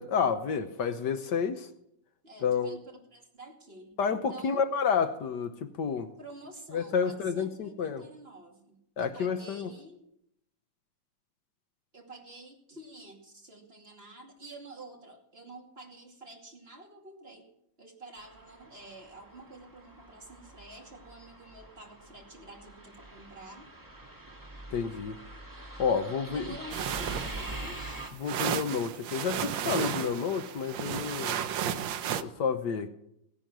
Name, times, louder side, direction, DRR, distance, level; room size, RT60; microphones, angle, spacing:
voice 1, 0.0-1.7 2.4-2.8 4.0-6.1 6.7-8.0 9.0-9.7 24.7-25.2 25.8-26.4 28.2-31.4 32.2-32.9, left 6 dB, 70° left, 9 dB, 1.5 m, -30 dB
voice 2, 2.2-2.8 3.1-4.0 4.3-4.6 6.2-10.0 11.9-17.5 17.8-23.7 26.3-28.1, right 2 dB, 30° right, 1 dB, 2.7 m, -49 dB
sound 1, 18.2-28.1, right 1 dB, 10° right, 1.5 m, -44 dB
sound 2, 26.7-32.2, right 9 dB, 80° right, 1.5 m, -33 dB
17.5 x 10.5 x 6.1 m, 0.78 s
omnidirectional pair, 2.0 m